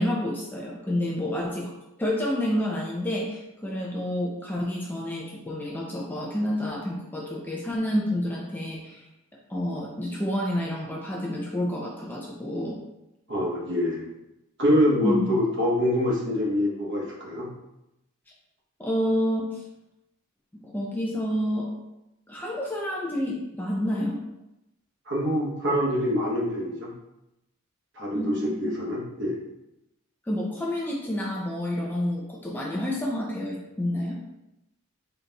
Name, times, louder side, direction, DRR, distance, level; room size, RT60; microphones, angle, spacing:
voice 1, 0.0-1.7 2.0-9.0 9.5-12.8 15.0-15.3 18.8-19.6 20.5-21.7 22.3-24.2 28.1-28.7 30.3-34.2, left 1 dB, 10° left, -2 dB, 0.4 m, -29 dB
voice 2, 13.3-14.1 14.6-17.5 25.1-26.9 28.0-29.4, left 1 dB, 50° right, -4 dB, 1.0 m, -25 dB
3.9 x 2.3 x 3.9 m, 0.91 s
head